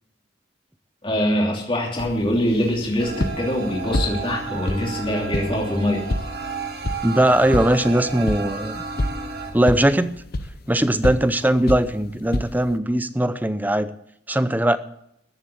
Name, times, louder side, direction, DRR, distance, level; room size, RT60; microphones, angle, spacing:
voice 1, 1.0-6.0, left 1 dB, 25° left, -1 dB, 3.0 m, -23 dB
sound 1, 2.0-12.8, left 1 dB, 55° left, 0.8 m, -30 dB
sound 2, 3.0-9.5, right 4 dB, 55° right, 2.2 m, -32 dB
voice 2, 7.0-8.8 9.5-10.2 10.7-13.9 14.3-14.8, right 1 dB, 10° right, 12 dB, 0.6 m, -20 dB
14.5 x 7.5 x 8.4 m, 0.74 s
head